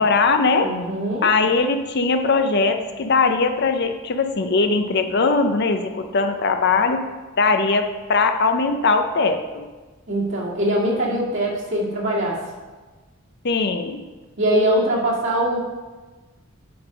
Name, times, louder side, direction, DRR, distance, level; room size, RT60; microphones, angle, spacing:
voice 1, 0.0-0.7 1.2-7.0 7.4-9.7 13.4-14.0, left 4 dB, 55° left, 7 dB, 0.6 m, -20 dB
voice 2, 0.6-1.3 10.1-12.4 14.4-15.6, right 1 dB, 60° right, -4 dB, 2.1 m, -22 dB
8.6 x 5.5 x 5.1 m, 1.3 s
head